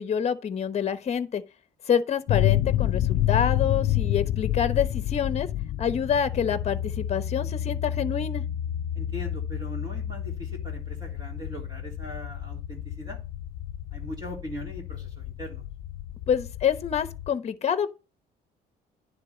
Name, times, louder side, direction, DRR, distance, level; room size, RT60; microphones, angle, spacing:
voice 1, 0.0-1.4 1.9-5.5 5.8-8.4 16.3-17.9, left 8 dB, 40° left, 1.0 m, -27 dB
sound 1, 2.3-17.3, left 12 dB, 70° left, 0.6 m, -29 dB
voice 2, 8.9-13.2 13.9-15.6, equal, 25° right, 3.1 m, -40 dB
10.5 x 3.6 x 7.0 m
cardioid pair, 110°, 17 cm